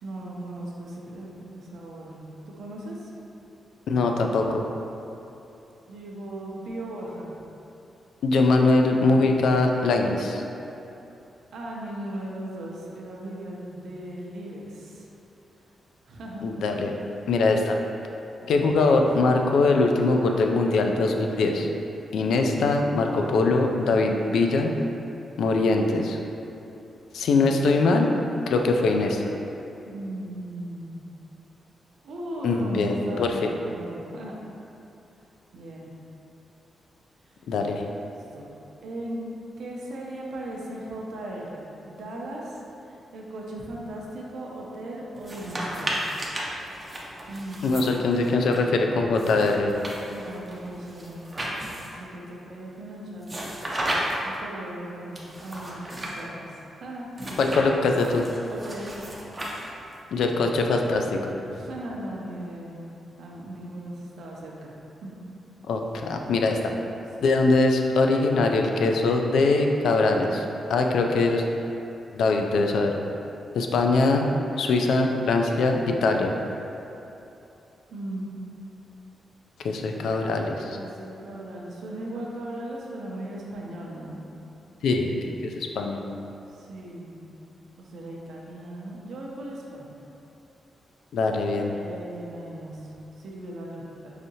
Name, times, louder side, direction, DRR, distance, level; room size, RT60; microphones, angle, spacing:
voice 1, 0.0-3.1 5.9-7.3 8.3-8.5 11.5-15.1 16.1-16.5 18.4-18.7 29.8-31.1 32.0-34.4 35.5-35.9 38.0-38.5 38.8-39.3 39.6-46.0 47.3-47.7 50.1-51.3 51.8-53.4 54.2-57.1 58.5-59.3 61.5-62.9 63.2-64.7 65.0-65.2 77.9-78.3 80.8-84.2 86.5-87.2 87.8-90.0 91.7-94.1, right 1 dB, 70° right, -3 dB, 0.6 m, -37 dB
voice 2, 3.9-4.6 8.2-10.4 16.4-16.9 17.3-17.7 18.5-21.7 22.1-24.7 25.4-26.2 27.1-28.1 28.5-29.3 32.4-33.3 37.5-37.8 47.6-49.7 57.4-58.2 60.1-61.3 65.7-66.6 67.2-70.4 70.7-71.4 72.1-72.9 73.5-74.3 74.6-76.3 79.6-80.8 84.8-86.0 91.1-91.7, left 3 dB, 85° left, 3 dB, 0.3 m, -22 dB
sound 1, 45.2-48.6 49.2-52.1 53.2-54.4 55.2-56.2 57.1-60.0, right 1 dB, 20° right, 0.4 m, -34 dB
4.8 x 2.7 x 2.7 m, 2.9 s
wide cardioid pair, 165°, 0 cm